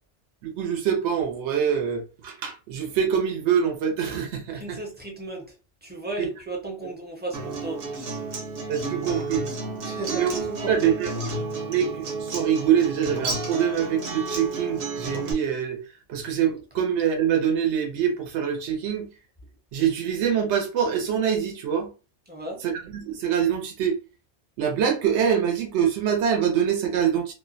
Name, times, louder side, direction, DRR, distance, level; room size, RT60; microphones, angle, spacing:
voice 1, 0.4-4.8 6.2-6.3 8.7-9.5 10.1-11.3 11.7-15.8 16.1-19.1 19.7-21.9 22.6-24.0 24.6-27.3, right 8 dB, 85° right, 0.9 m, -25 dB
voice 2, 4.5-5.5 5.8-8.2 9.8-10.7 22.3-22.6, right 2 dB, 15° right, 0.4 m, -35 dB
Acoustic guitar, 7.3-15.3, right 3 dB, 60° right, 0.8 m, -32 dB
2.4 x 2.1 x 2.4 m
omnidirectional pair, 1.2 m